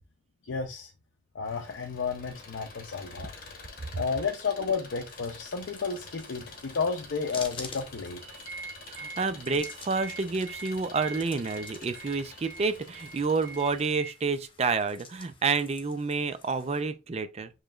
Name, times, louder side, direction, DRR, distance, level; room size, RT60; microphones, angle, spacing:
voice 1, 0.5-0.9 1.3-3.3 3.9-8.2, left 5 dB, 75° left, 0.5 m, -32 dB
Engine, 1.4-14.0, left 3 dB, 45° left, 1.1 m, -48 dB
sound 1, 5.1-16.8, left 4 dB, 30° left, 0.7 m, -49 dB
sound 2, 8.2-14.1, right 4 dB, 85° right, 1.1 m, -44 dB
voice 2, 8.9-17.5, right 4 dB, 35° right, 0.4 m, -29 dB
6.8 x 3.1 x 2.4 m
head